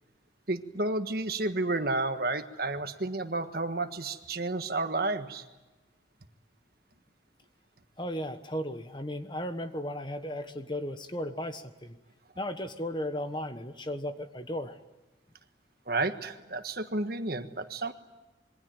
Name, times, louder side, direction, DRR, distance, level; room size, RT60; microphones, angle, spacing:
voice 1, 0.5-5.4 15.9-17.9, right 2 dB, 55° right, 8 dB, 1.6 m, -31 dB
voice 2, 8.0-12.0 12.4-14.7, left 1 dB, 25° left, 8 dB, 1.3 m, -35 dB
27.0 x 23.0 x 9.1 m, 1.1 s
head